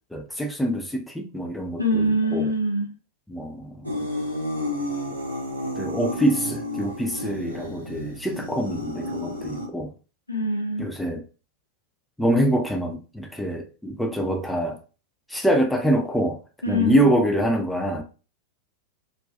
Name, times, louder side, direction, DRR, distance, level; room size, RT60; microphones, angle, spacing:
voice 1, 0.1-2.5 3.3-4.0 5.8-9.9 10.8-11.2 12.2-14.8 15.3-16.4 16.7-18.0, right 1 dB, 5° left, 0.4 m, -25 dB
voice 2, 1.8-2.9 10.3-10.9 16.6-17.0, equal, 85° left, 0.5 m, -23 dB
sound 1, 3.8-9.7, left 1 dB, 85° right, 0.6 m, -31 dB
2.4 x 2.2 x 2.3 m
figure-of-eight pair, 90°, 0 cm